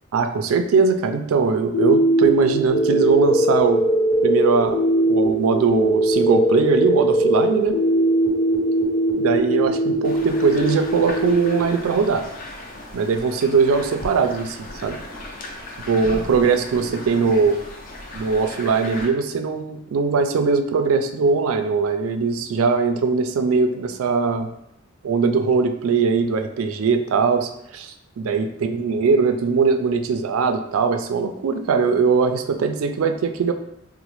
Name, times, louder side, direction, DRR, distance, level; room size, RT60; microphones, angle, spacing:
voice 1, 0.1-3.8 4.2-7.8 9.2-12.3 12.9-15.0 15.9-17.6 18.1-24.5 25.0-33.5, right 5 dB, 80° right, 7 dB, 0.3 m, -20 dB
sound 1, 1.7-11.7, right 1 dB, 55° left, 0.9 m, -20 dB
sound 2, 10.0-19.1, left 1 dB, 40° left, 0.5 m, -37 dB
4.0 x 2.1 x 3.0 m, 0.76 s
head